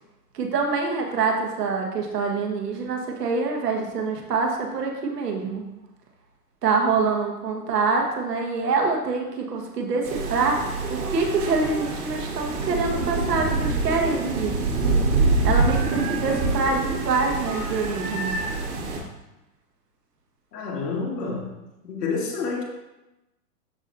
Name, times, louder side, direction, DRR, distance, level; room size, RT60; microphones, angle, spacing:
voice 1, 0.3-5.7 6.6-14.5 15.4-18.4, right 4 dB, 80° right, 1 dB, 1.6 m, -25 dB
sound 1, 10.0-19.0, right 3 dB, 65° right, 2.2 m, -26 dB
voice 2, 20.5-21.5 21.8-22.6, left 4 dB, 80° left, -3 dB, 2.2 m, -28 dB
12.5 x 4.3 x 2.6 m, 0.98 s
hypercardioid pair, 145°, 47 cm